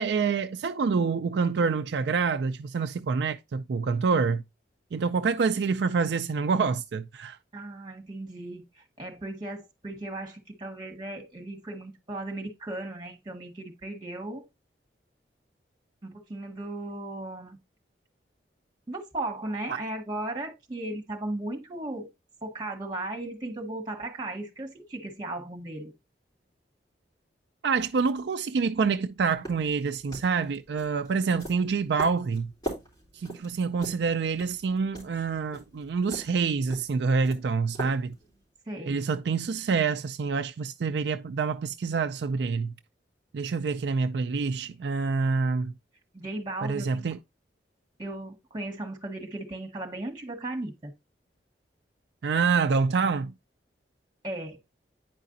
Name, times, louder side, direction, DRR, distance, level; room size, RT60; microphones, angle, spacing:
voice 1, 0.0-4.4 4.9-7.4 27.6-32.5 33.1-38.1 38.9-42.7 43.3-45.7 46.6-47.2 52.2-53.3, right 5 dB, 70° right, 0.4 m, -27 dB
voice 2, 7.5-14.5 16.0-17.6 18.9-22.1 22.4-25.9 38.7-39.1 46.1-47.1 48.0-50.9 54.2-54.6, right 2 dB, 25° right, 1.7 m, -36 dB
sound 1, 29.3-38.5, right 2 dB, 20° left, 3.8 m, -43 dB
9.3 x 4.9 x 2.6 m
head